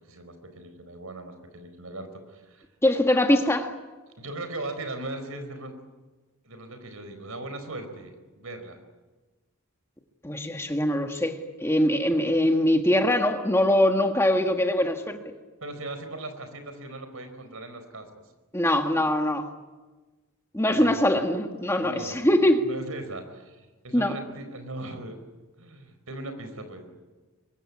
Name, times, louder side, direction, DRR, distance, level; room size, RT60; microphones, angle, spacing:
voice 1, 0.1-2.7 4.2-5.7 6.4-8.8 15.6-18.1 20.7-21.0 21.8-22.2 22.6-25.2 25.6-26.9, right 2 dB, 75° right, 8 dB, 4.6 m, -38 dB
voice 2, 2.8-3.7 10.2-15.2 18.5-19.5 20.5-22.6 23.9-24.1, left 1 dB, 10° left, 5 dB, 1.6 m, -22 dB
24.0 x 23.5 x 9.7 m, 1.3 s
head